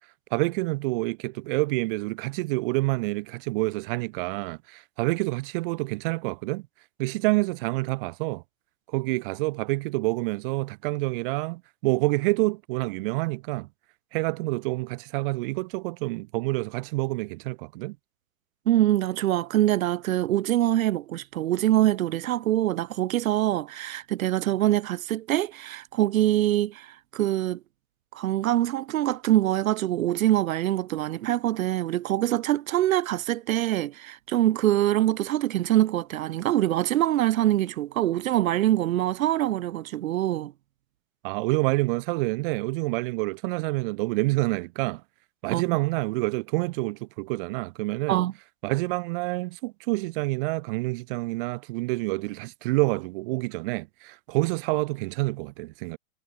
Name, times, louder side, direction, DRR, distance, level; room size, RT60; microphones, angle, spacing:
voice 1, 0.3-6.7 7.0-8.4 8.9-13.7 14.1-18.0 41.2-45.0 45.4-48.2 48.6-56.0, right 23 dB, 40° right, 0.5 m, -27 dB
voice 2, 18.7-27.6 28.1-40.5 45.5-45.8 48.1-48.3, right 13 dB, 80° right, 1.8 m, -24 dB
supercardioid pair, 145°, 41 cm